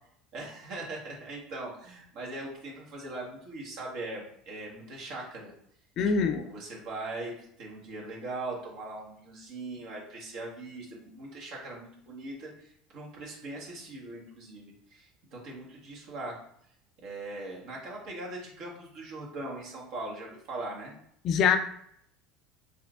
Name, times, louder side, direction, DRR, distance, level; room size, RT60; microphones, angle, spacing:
voice 1, 0.3-5.5 6.0-16.4 17.0-20.9, right 2 dB, 65° right, -2 dB, 1.2 m, -40 dB
voice 2, 6.0-6.4 21.2-21.6, left 6 dB, 55° left, 7 dB, 0.4 m, -23 dB
4.2 x 2.5 x 2.3 m, 0.68 s
supercardioid pair, 95°, 0 cm